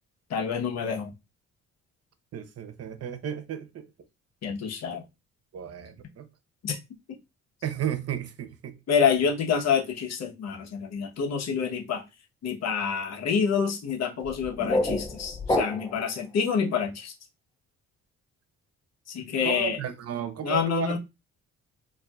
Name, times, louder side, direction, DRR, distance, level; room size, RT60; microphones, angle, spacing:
voice 1, 0.3-1.1 4.4-5.0 6.6-6.8 8.9-12.0 12.4-17.1 19.1-19.8 20.4-21.0, left 6 dB, 60° left, 1.0 m, -27 dB
voice 2, 2.3-3.9 5.5-6.3 7.6-8.8 19.4-21.0, right 9 dB, 55° right, 0.7 m, -33 dB
sound 1, 14.2-16.1, left 1 dB, 15° left, 0.9 m, -28 dB
4.5 x 2.7 x 2.3 m
cardioid pair, 90°, 30 cm